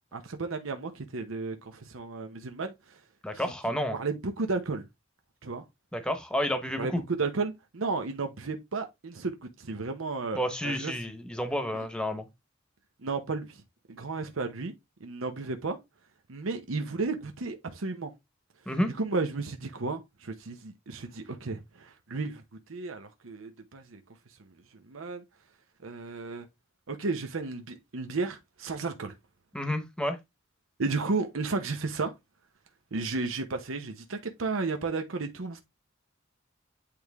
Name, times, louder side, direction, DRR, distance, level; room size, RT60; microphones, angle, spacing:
voice 1, 0.1-2.7 3.3-3.4 3.9-4.8 5.4-5.6 6.8-6.9 7.2-10.9 13.0-13.6 13.9-14.7 15.0-15.8 16.3-18.1 19.0-22.4 22.7-24.0 24.9-25.2 25.8-26.5 26.9-29.1 30.8-32.1 32.9-35.6, right 3 dB, 90° right, 0.9 m, -33 dB
voice 2, 3.2-4.0 5.9-7.0 10.3-12.3 18.7-18.9 29.5-30.2, equal, 5° left, 1.0 m, -30 dB
8.6 x 3.3 x 3.5 m
head